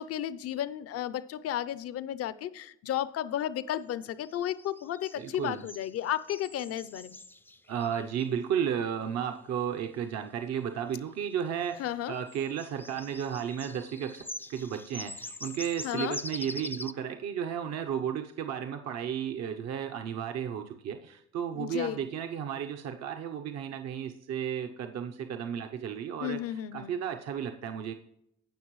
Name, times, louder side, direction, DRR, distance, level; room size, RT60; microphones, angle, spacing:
voice 1, 0.0-7.2 11.8-12.1 15.8-16.2 21.5-22.0 26.2-26.9, left 11 dB, 50° left, 16 dB, 0.6 m, -33 dB
sound 1, 4.0-8.2 11.7-11.8 12.1-16.9, left 2 dB, 5° left, 0.4 m, -43 dB
voice 2, 5.2-5.6 7.7-27.9, right 8 dB, 60° right, 5 dB, 0.8 m, -34 dB
17.5 x 5.9 x 3.2 m, 0.75 s
cardioid pair, 95°, 30 cm